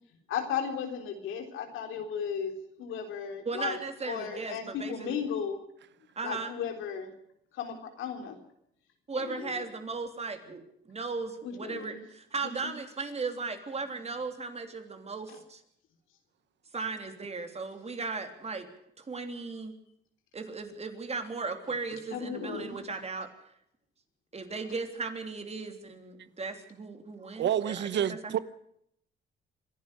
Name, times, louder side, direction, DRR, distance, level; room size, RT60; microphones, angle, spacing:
voice 1, 0.3-2.5 2.8-3.8 4.1-5.6 6.2-7.1 7.5-8.4 9.2-9.5 11.4-12.0 12.6-12.7 15.3-15.4 22.1-22.8, left 7 dB, 90° left, 3.6 m, -35 dB
voice 2, 3.4-5.2 6.1-6.5 9.1-10.6 10.9-15.6 16.7-18.7 19.0-19.7 20.3-23.3 24.3-28.3, right 4 dB, 30° right, 3.4 m, -37 dB
voice 3, 27.4-28.4, right 10 dB, 65° right, 0.9 m, -28 dB
25.5 x 11.5 x 9.9 m
cardioid pair, 90°, 20 cm